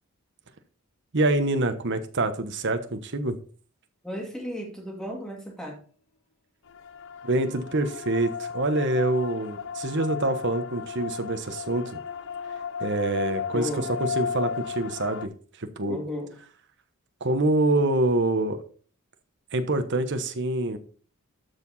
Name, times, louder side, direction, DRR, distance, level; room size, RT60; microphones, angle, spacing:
voice 1, 1.1-3.3 7.2-12.0 12.8-15.3 15.6-16.0 17.2-18.6 19.5-20.8, right 2 dB, 55° right, 8 dB, 1.1 m, -26 dB
voice 2, 4.0-5.8 13.5-13.9 15.9-16.3, left 1 dB, 5° left, 0 dB, 2.3 m, -34 dB
sound 1, 6.7-15.3, left 7 dB, 60° left, 0.5 m, -34 dB
13.0 x 4.8 x 4.1 m, 0.42 s
head